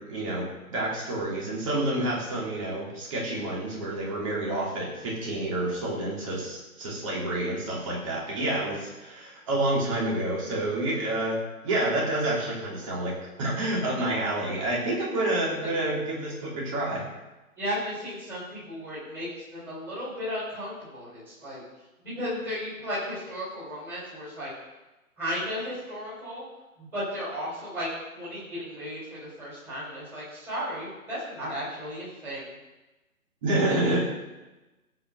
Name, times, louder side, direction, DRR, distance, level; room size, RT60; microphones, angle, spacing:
voice 1, 0.0-17.0 33.4-34.0, right 1 dB, 20° right, -4 dB, 3.3 m, -28 dB
voice 2, 17.6-21.6 22.0-24.5 25.2-26.4 26.8-27.9 28.1-32.5, equal, 5° right, -10 dB, 5.1 m, -34 dB
16.5 x 5.9 x 6.6 m, 1.1 s
hypercardioid pair, 170°, 43 cm